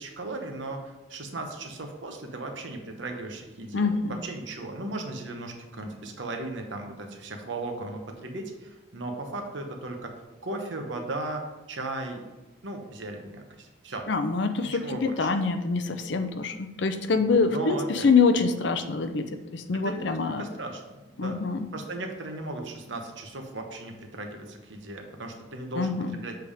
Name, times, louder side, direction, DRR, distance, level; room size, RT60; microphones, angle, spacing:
voice 1, 0.0-3.9 4.2-10.1 10.4-12.2 12.6-14.1 14.6-15.3 17.2-18.1 18.3-18.4 19.8-21.5 21.7-26.4, right 2 dB, 85° right, 3 dB, 1.0 m, -36 dB
voice 2, 3.7-4.1 14.1-20.4 21.2-21.7 25.8-26.2, left 4 dB, 70° left, 9 dB, 0.6 m, -25 dB
7.7 x 3.5 x 4.9 m, 1.1 s
head